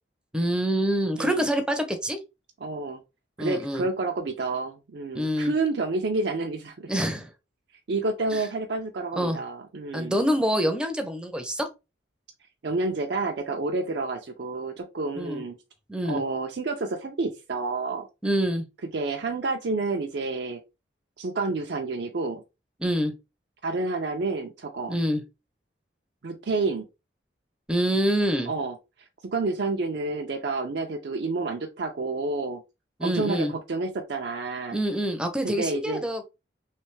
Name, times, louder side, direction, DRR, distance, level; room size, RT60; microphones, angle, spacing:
voice 1, 0.3-2.2 3.4-3.9 5.1-5.5 6.9-7.3 8.3-8.4 9.2-9.4 9.9-11.7 15.2-15.4 15.9-16.2 18.2-18.7 22.8-23.1 24.9-25.2 27.7-28.5 33.0-33.5 34.7-36.2, equal, 5° right, 0.5 m, -26 dB
voice 2, 2.6-3.0 3.4-6.9 7.9-10.2 12.6-15.6 16.0-18.1 18.9-20.6 21.2-22.4 23.6-25.0 26.2-26.9 28.5-28.8 29.2-32.6 33.0-34.8 35.4-36.1, right 3 dB, 60° right, 0.5 m, -29 dB
3.2 x 3.1 x 3.1 m
head